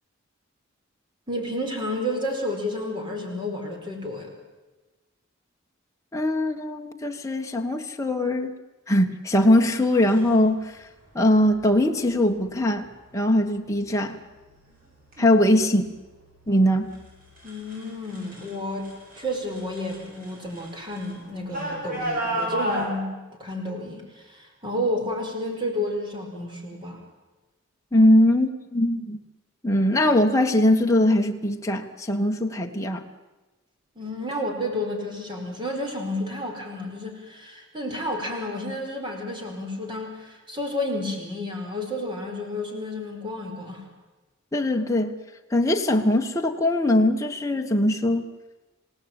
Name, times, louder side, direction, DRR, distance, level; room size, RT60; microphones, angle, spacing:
voice 1, 1.3-4.3 15.2-15.4 17.4-18.9 19.2-27.0 33.9-43.8, left 1 dB, 20° right, 2 dB, 4.8 m, -31 dB
voice 2, 6.1-8.6 8.9-10.8 11.1-12.9 13.1-14.2 15.2-15.9 16.5-16.9 27.9-29.2 29.6-33.0 44.5-45.2 45.5-48.3, left 1 dB, 15° left, 2 dB, 1.4 m, -21 dB
sound 1, 9.6-10.3 11.5-11.8 12.4-12.8 13.4-13.9 14.2-18.5 18.8-22.9, right 1 dB, 40° right, 7.7 m, -34 dB
27.0 x 17.5 x 9.0 m, 1.2 s
head